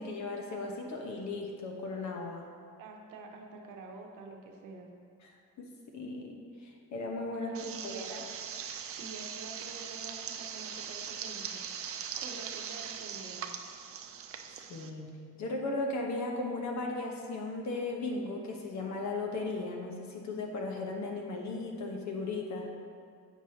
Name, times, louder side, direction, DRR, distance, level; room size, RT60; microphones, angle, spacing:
voice 1, 0.0-2.4 5.6-6.4 6.6-7.6 7.8-8.1 14.7-15.1 15.4-22.7, left 3 dB, 65° left, 1 dB, 1.1 m, -36 dB
voice 2, 2.8-4.9 7.3-8.2 8.8-11.6 11.9-13.5, right 3 dB, 90° right, 2 dB, 0.9 m, -48 dB
sound 1, 7.5-14.9, right 7 dB, 50° right, 0.5 m, -41 dB
8.2 x 6.1 x 2.8 m, 2.2 s
cardioid pair, 90°, 30 cm